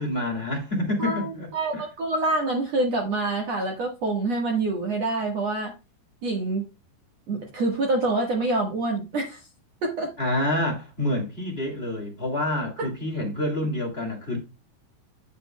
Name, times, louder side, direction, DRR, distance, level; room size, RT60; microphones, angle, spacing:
voice 1, 0.0-1.8 10.2-14.4, left 1 dB, 25° left, 1.3 m, -28 dB
voice 2, 1.0-5.7 6.2-6.6 7.3-9.4 9.8-10.1 12.8-12.9, right 2 dB, 60° right, 1.7 m, -26 dB
9.8 x 8.3 x 2.2 m
omnidirectional pair, 5.1 m